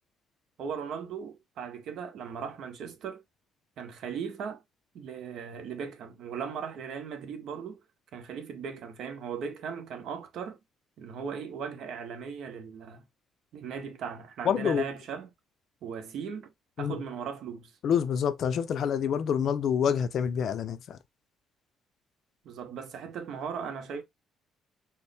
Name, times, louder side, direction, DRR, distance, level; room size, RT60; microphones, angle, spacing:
voice 1, 0.6-3.2 3.8-4.6 4.9-7.8 8.1-10.6 11.0-13.0 13.5-15.3 15.8-16.5 16.8-17.7 22.4-24.0, right 6 dB, 65° right, 0.8 m, -38 dB
voice 2, 14.4-14.9 16.8-17.0 17.8-21.0, left 8 dB, 55° left, 0.5 m, -27 dB
4.3 x 2.1 x 3.3 m
cardioid pair, 135°, 0 cm